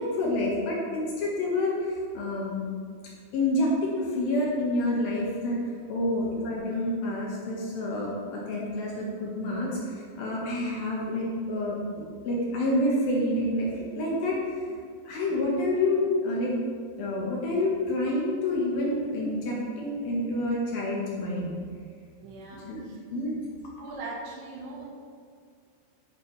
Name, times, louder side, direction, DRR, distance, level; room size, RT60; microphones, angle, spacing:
voice 1, 0.0-2.7 3.3-5.6 5.9-16.6 17.0-21.6 22.5-22.8 23.1-23.4, left 1 dB, 65° left, -4 dB, 2.7 m, -28 dB
voice 2, 22.2-23.0 23.8-24.9, right 3 dB, 80° right, -2 dB, 4.0 m, -41 dB
10.5 x 9.8 x 3.4 m, 2.1 s
omnidirectional pair, 5.3 m